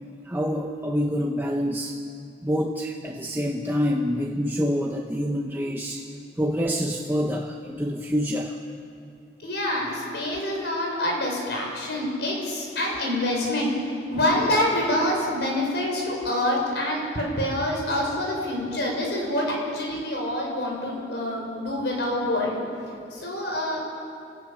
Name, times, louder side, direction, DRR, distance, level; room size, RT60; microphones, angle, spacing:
voice 1, 0.3-2.0 2.4-6.1 6.4-8.6, equal, 10° right, 0 dB, 1.0 m, -26 dB
voice 2, 9.4-13.7 14.1-22.6 23.1-23.8, left 1 dB, 65° left, -1 dB, 6.5 m, -26 dB
29.5 x 18.5 x 7.2 m, 2.5 s
head